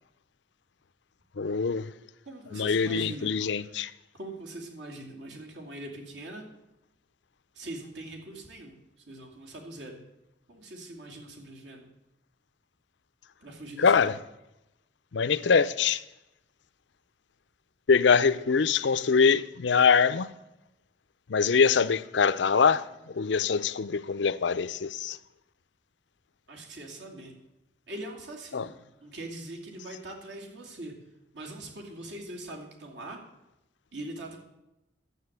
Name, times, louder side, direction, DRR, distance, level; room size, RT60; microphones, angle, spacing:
voice 1, 1.4-1.9 2.5-3.9 13.8-14.1 15.1-16.0 17.9-20.3 21.3-25.2 28.5-28.7, left 5 dB, 75° left, 0.5 m, -24 dB
voice 2, 2.3-3.3 4.1-6.4 7.6-8.8 9.1-10.0 10.5-11.9 13.4-14.1 26.5-27.3 27.9-30.9 31.3-33.2 33.9-34.4, right 1 dB, 75° right, 2.6 m, -42 dB
11.5 x 8.1 x 8.0 m
head